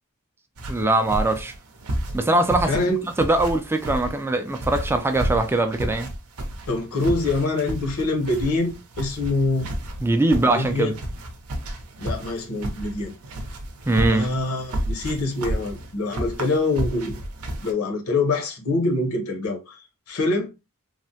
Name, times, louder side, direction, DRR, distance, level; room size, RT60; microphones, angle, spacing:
sound 1, 0.6-17.7, right 1 dB, 75° right, 0.6 m, -32 dB
voice 1, 0.7-1.5 2.1-6.1 10.0-10.9 13.9-14.3, right 2 dB, 10° right, 0.3 m, -22 dB
voice 2, 2.6-3.0 6.7-9.7 10.5-10.9 12.0-13.1 14.1-17.2 17.6-19.8 20.1-20.5, left 2 dB, 75° left, 0.8 m, -25 dB
3.2 x 2.1 x 2.7 m
head